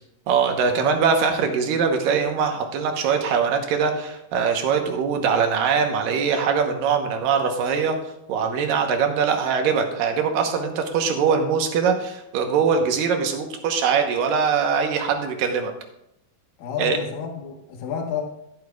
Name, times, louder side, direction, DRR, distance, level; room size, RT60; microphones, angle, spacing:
voice 1, 0.3-8.0 8.3-15.7 16.8-17.0, right 6 dB, 75° right, 4 dB, 2.6 m, -22 dB
voice 2, 16.6-18.2, left 7 dB, 70° left, 2 dB, 2.9 m, -30 dB
12.5 x 11.5 x 2.4 m, 0.80 s
omnidirectional pair, 4.3 m